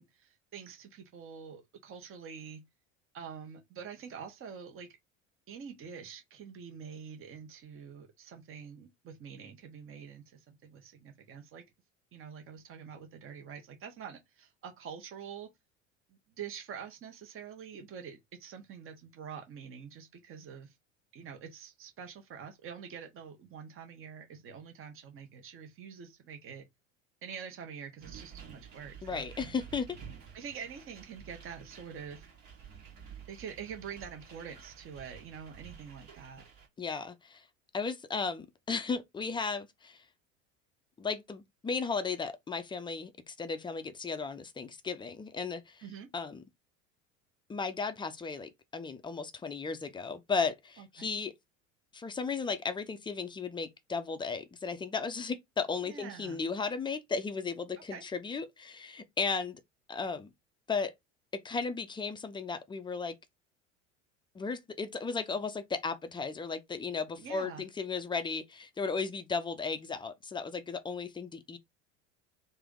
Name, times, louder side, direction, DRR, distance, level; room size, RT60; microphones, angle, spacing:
voice 1, 0.0-2.6 3.1-4.9 5.5-11.6 12.1-15.5 16.1-20.8 21.1-26.6 27.2-29.2 30.3-32.3 33.3-36.4 45.8-46.1 50.8-51.1 55.8-56.4 57.9-58.0 67.2-67.6, right 7 dB, 35° right, 1.1 m, -46 dB
sound 1, 28.0-36.7, right 7 dB, 55° right, 1.6 m, -51 dB
voice 2, 29.0-29.9 36.8-37.5 37.7-40.0 41.0-45.8 46.1-46.4 47.5-51.3 51.9-59.6 59.9-60.3 60.7-60.9 61.3-63.2 64.3-71.6, left 4 dB, 10° left, 0.5 m, -35 dB
3.4 x 2.6 x 3.6 m
figure-of-eight pair, 70°, 39 cm